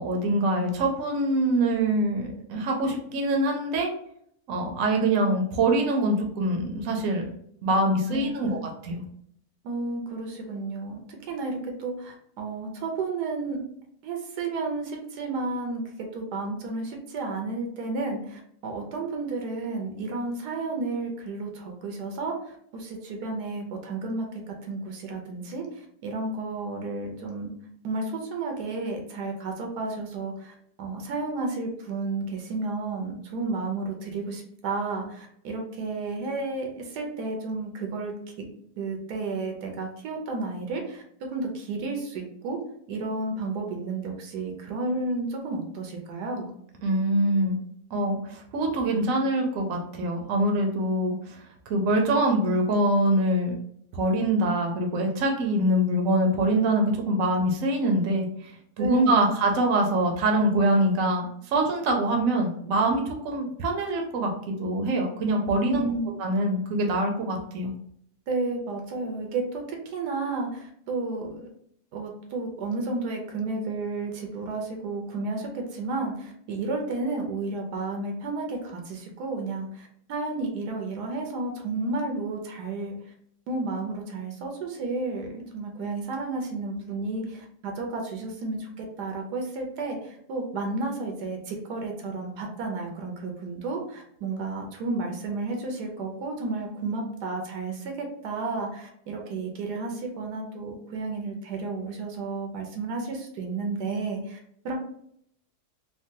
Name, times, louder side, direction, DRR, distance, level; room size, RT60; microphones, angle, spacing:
voice 1, 0.0-3.9 4.5-7.3 7.6-8.6 8.8-9.0 46.8-47.6 47.9-51.4 51.7-53.6 53.9-64.3 64.6-65.8 66.2-67.7, right 1 dB, 65° right, 2 dB, 1.0 m, -24 dB
voice 2, 8.1-8.5 9.6-13.7 14.0-15.8 16.1-27.5 27.8-38.5 38.8-41.0 41.3-42.6 42.9-46.5 58.8-59.2 65.7-66.1 68.3-71.5 71.9-82.9 83.5-104.4 104.6-104.7, right 3 dB, 85° right, 2 dB, 1.3 m, -32 dB
3.6 x 2.2 x 2.7 m, 0.69 s
omnidirectional pair, 1.7 m